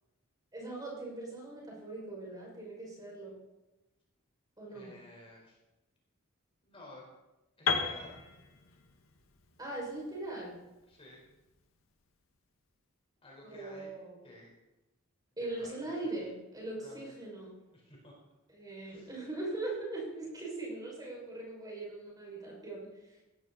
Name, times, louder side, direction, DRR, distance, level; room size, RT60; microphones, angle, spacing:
voice 1, 0.5-3.4 4.6-4.9 9.6-10.6 13.5-14.1 15.4-17.5 18.5-22.9, right 2 dB, 20° right, -3 dB, 6.1 m, -40 dB
voice 2, 4.6-5.6 6.6-7.1 7.6-8.2 10.9-11.2 13.2-13.9 14.2-14.6 15.4-16.2 16.8-17.0 17.7-18.1 18.8-19.1, left 1 dB, 25° left, -2 dB, 4.5 m, -53 dB
Piano, 7.7-11.6, left 5 dB, 75° left, 1.8 m, -36 dB
17.5 x 15.0 x 4.2 m, 1.0 s
head